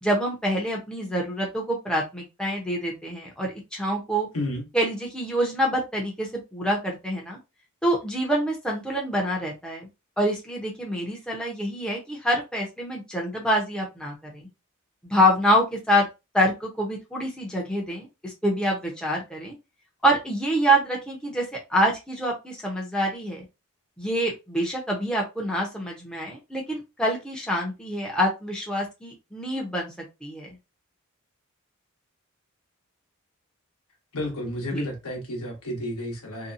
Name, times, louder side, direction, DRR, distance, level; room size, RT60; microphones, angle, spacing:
voice 1, 0.0-4.3 4.7-7.4 7.8-9.9 10.2-14.5 15.0-16.0 16.3-19.5 20.0-21.4 21.7-23.4 24.0-29.9 30.2-30.5 34.7-34.9, equal, 5° left, 0.7 m, -26 dB
voice 2, 4.3-4.6 34.1-36.5, left 1 dB, 85° left, 1.0 m, -31 dB
2.7 x 2.2 x 2.6 m
head